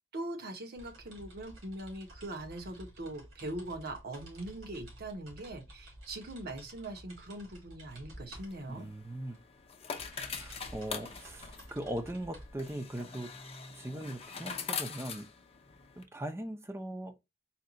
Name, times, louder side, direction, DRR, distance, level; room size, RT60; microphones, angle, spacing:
voice 1, 0.1-8.9, right 1 dB, 50° right, 0.9 m, -41 dB
sound 1, 0.8-14.5, equal, 75° right, 2.2 m, -53 dB
sound 2, 8.4-16.0, left 6 dB, 30° left, 0.7 m, -43 dB
voice 2, 8.7-9.4 10.2-13.3 13.7-15.3 16.0-17.1, right 1 dB, 15° right, 0.5 m, -40 dB
4.3 x 2.3 x 3.8 m
head